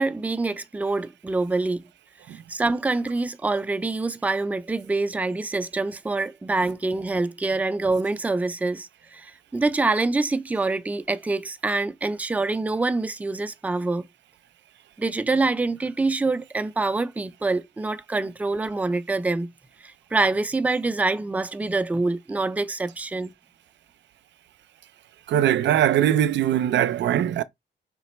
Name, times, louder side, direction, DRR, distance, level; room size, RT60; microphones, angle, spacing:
voice 1, 0.0-1.8 2.3-14.1 15.0-19.5 19.8-23.3, right 3 dB, 10° right, 0.4 m, -25 dB
voice 2, 25.3-27.4, right 11 dB, 80° right, 0.5 m, -21 dB
5.1 x 3.2 x 3.0 m
wide cardioid pair, 150°, 18 cm